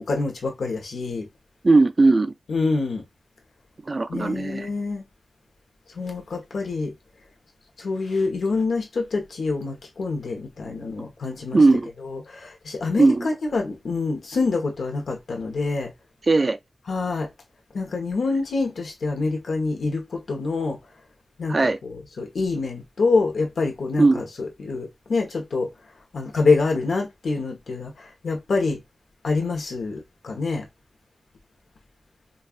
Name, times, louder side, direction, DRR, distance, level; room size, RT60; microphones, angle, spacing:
voice 1, 0.1-1.3 2.5-3.0 4.1-5.0 5.9-6.9 7.8-11.6 12.0-15.9 16.9-17.3 17.7-20.8 21.4-21.6 21.8-25.7 26.1-28.8 29.2-30.7, left 3 dB, 90° left, 1.1 m, -26 dB
voice 2, 1.6-2.3 3.9-4.7 11.5-11.9 13.0-13.3 16.3-16.6 21.5-21.8 24.0-24.2, right 3 dB, 35° right, 0.4 m, -18 dB
5.3 x 2.4 x 2.4 m
wide cardioid pair, 130°, 0 cm